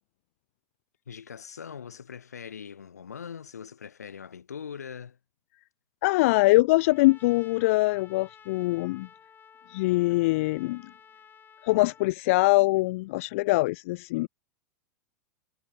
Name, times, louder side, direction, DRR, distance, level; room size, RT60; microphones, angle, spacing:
voice 1, 1.1-5.2, left 7 dB, 85° left, 2.4 m, -41 dB
voice 2, 6.0-9.1 9.7-10.8 11.6-14.3, left 21 dB, 60° left, 0.7 m, -23 dB
Trumpet, 6.8-12.1, left 7 dB, 25° left, 4.3 m, -53 dB
hypercardioid pair, 105°, 8 cm